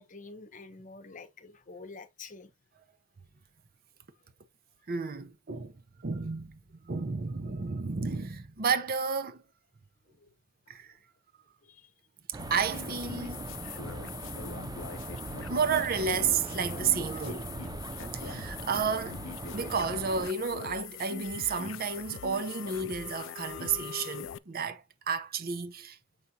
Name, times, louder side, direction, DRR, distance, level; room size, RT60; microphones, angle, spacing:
voice 1, 0.0-2.5 11.6-11.9 12.4-12.5, left 3 dB, 40° left, 0.8 m, -48 dB
voice 2, 4.9-5.7 6.0-9.4 10.7-10.9 12.3-13.5 14.4-14.7 15.5-17.5 18.1-19.2 19.5-26.0, right 5 dB, 50° right, 0.7 m, -32 dB
sound 1, 12.3-20.3, right 3 dB, 20° right, 0.3 m, -40 dB
sound 2, 12.4-24.4, left 9 dB, 75° left, 0.4 m, -43 dB
7.0 x 5.0 x 2.7 m
head